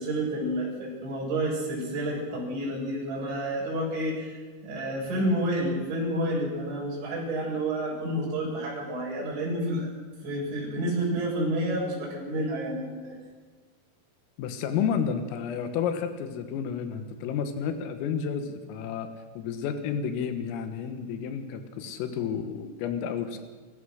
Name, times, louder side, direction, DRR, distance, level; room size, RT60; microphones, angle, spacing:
voice 1, 0.0-4.4 4.6-9.9 10.2-13.2, right 1 dB, 65° right, -4 dB, 9.7 m, -29 dB
voice 2, 14.4-19.1 19.4-23.4, left 7 dB, 90° left, 8 dB, 4.1 m, -31 dB
29.5 x 15.0 x 6.5 m, 1.4 s
omnidirectional pair, 5.8 m